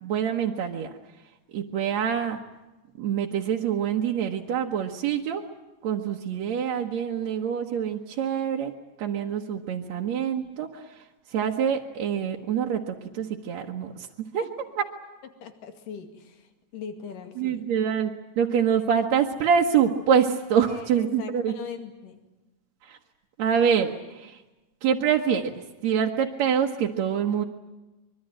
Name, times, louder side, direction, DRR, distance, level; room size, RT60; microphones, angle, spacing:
voice 1, 0.0-0.9 1.5-2.4 3.0-5.5 5.8-8.7 9.0-14.4 14.8-14.9 17.4-21.5 22.8-23.0 23.4-24.4 24.8-25.5 25.8-27.4, right 8 dB, 60° right, 0 dB, 2.3 m, -25 dB
voice 2, 15.4-17.7 20.7-22.2, left 7 dB, 75° left, 7 dB, 3.8 m, -40 dB
24.5 x 23.0 x 9.0 m, 1.1 s
omnidirectional pair, 3.9 m